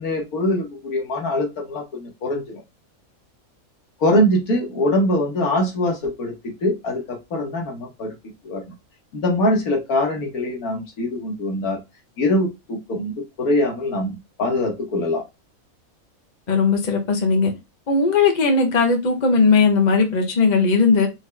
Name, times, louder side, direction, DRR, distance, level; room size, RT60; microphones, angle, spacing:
voice 1, 0.0-2.6 4.0-8.1 8.4-8.6 9.1-11.8 12.2-15.2, left 1 dB, 90° left, 1.8 m, -23 dB
voice 2, 16.5-17.5 17.9-21.1, left 4 dB, 35° left, 1.0 m, -18 dB
4.6 x 3.3 x 3.4 m
omnidirectional pair, 1.5 m